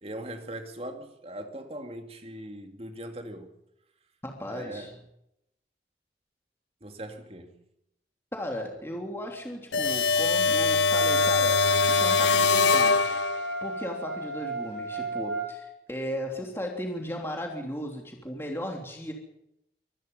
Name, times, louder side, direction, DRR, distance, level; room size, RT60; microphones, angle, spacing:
voice 1, 0.0-3.6 4.5-4.9 6.8-7.6, right 1 dB, 35° right, 2.3 m, -40 dB
voice 2, 4.2-5.0 8.3-13.2 13.6-19.1, equal, 15° left, 3.2 m, -36 dB
sound 1, 9.7-13.6, left 4 dB, 85° left, 0.8 m, -23 dB
Wind instrument woodwind instrument, 10.9-15.5, right 2 dB, 70° right, 3.5 m, -34 dB
24.5 x 19.0 x 5.5 m
head